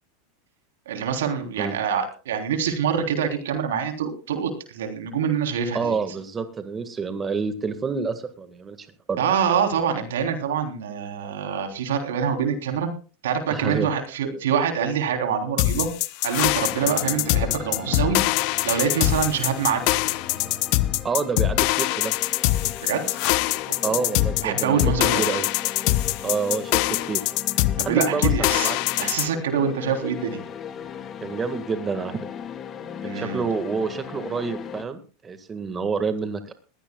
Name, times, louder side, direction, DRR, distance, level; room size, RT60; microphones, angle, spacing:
voice 1, 0.8-5.9 9.2-12.9 13.2-15.9 16.2-18.2 18.6-20.0 22.8-23.0 23.8-24.0 24.4-25.2 27.8-28.7 29.0-30.4 33.0-33.4, right 7 dB, 80° right, 5 dB, 3.4 m, -25 dB
voice 2, 5.7-9.2 13.5-13.9 21.0-22.2 23.8-24.8 25.2-25.5 26.2-27.2 27.8-29.1 31.2-32.2 33.0-36.5, right 5 dB, 25° right, 9 dB, 1.7 m, -28 dB
sound 1, 15.6-29.3, left 19 dB, 60° left, 0.7 m, -23 dB
sound 2, 16.4-34.8, left 8 dB, 35° left, 1.9 m, -37 dB
21.5 x 16.0 x 2.3 m, 0.36 s
hypercardioid pair, 105°, 0 cm